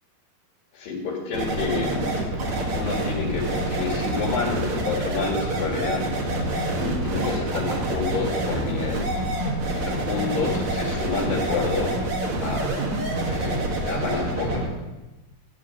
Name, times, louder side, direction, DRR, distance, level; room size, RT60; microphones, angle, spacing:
voice 1, 0.7-2.1 2.7-6.1 6.7-9.0 9.7-11.9 12.4-12.8 13.3-14.6, left 4 dB, 70° left, -4 dB, 3.9 m, -29 dB
sound 1, 1.3-14.7, right 1 dB, 55° right, 2.7 m, -27 dB
13.5 x 4.9 x 8.8 m, 1.1 s
omnidirectional pair, 4.2 m